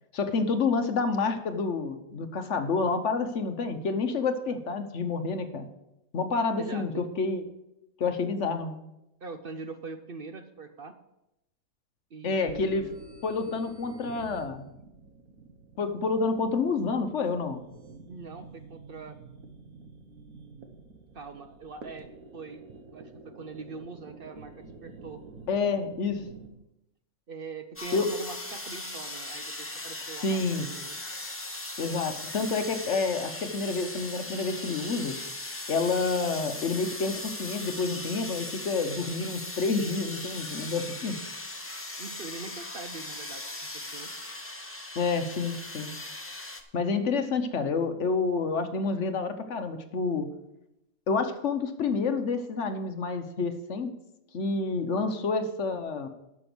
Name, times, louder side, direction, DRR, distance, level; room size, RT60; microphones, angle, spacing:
voice 1, 0.1-5.7 6.1-7.4 8.0-8.8 12.2-12.8 13.2-14.6 15.8-17.6 25.5-26.3 27.9-28.1 30.2-30.7 31.8-35.2 35.7-41.2 45.0-45.9 46.7-50.3 51.1-53.9 54.3-56.1, left 4 dB, 55° left, 8 dB, 1.2 m, -28 dB
voice 2, 6.6-7.1 9.2-10.9 12.1-12.9 18.1-19.2 21.1-22.1 22.3-22.6 22.9-25.2 27.3-31.0 42.0-43.4 43.7-44.1, right 4 dB, 50° right, 8 dB, 0.7 m, -42 dB
sound 1, 12.3-26.5, right 4 dB, 75° right, 1.6 m, -49 dB
sound 2, 27.8-46.6, left 2 dB, 15° left, 0.6 m, -39 dB
12.0 x 6.2 x 6.0 m, 0.88 s
omnidirectional pair, 1.5 m